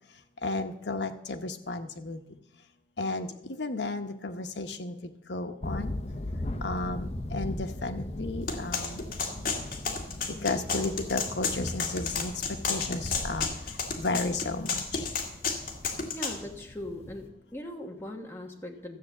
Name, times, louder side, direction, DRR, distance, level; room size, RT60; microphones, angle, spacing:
voice 1, 0.4-2.2 3.0-3.3 3.6-5.0 5.3-5.9 6.6-9.0 10.4-12.3 12.7-13.5 14.0-15.0, left 3 dB, 85° left, 7 dB, 1.0 m, -33 dB
sound 1, 5.6-17.3, left 1 dB, 35° left, 0.8 m, -39 dB
sound 2, 8.5-16.4, left 5 dB, 50° left, 1.8 m, -31 dB
voice 2, 16.1-19.0, left 1 dB, 15° left, 1 dB, 1.4 m, -40 dB
13.5 x 7.8 x 7.2 m, 0.85 s
head